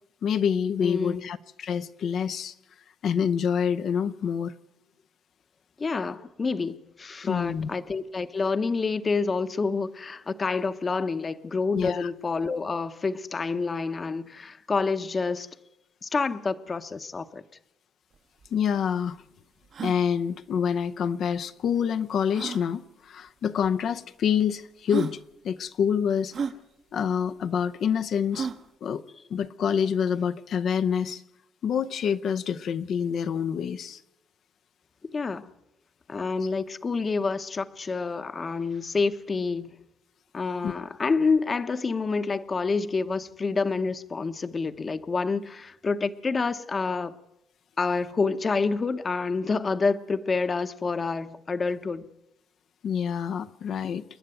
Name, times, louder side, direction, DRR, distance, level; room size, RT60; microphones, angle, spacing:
voice 1, 0.2-2.5 3.0-4.5 7.3-7.7 11.8-12.1 18.5-19.2 19.8-26.3 26.9-28.5 28.8-29.0 29.3-31.2 31.6-34.0 40.6-40.7 52.8-54.0, left 7 dB, 55° left, 0.7 m, -27 dB
voice 2, 0.8-1.3 5.8-15.5 16.0-17.4 35.0-35.5 36.1-39.7 40.3-47.1 47.8-52.1, left 4 dB, 25° left, 0.9 m, -28 dB
sound 1, 18.1-18.2 18.4-18.5 19.0-19.1 19.6-20.0 21.3-21.4 22.3-22.6 23.6-23.7 24.5-24.6 24.9-25.2 26.3-26.6 28.3-28.7, right 6 dB, 45° right, 1.1 m, -32 dB
28.5 x 10.5 x 9.1 m
cardioid pair, 135°, 0 cm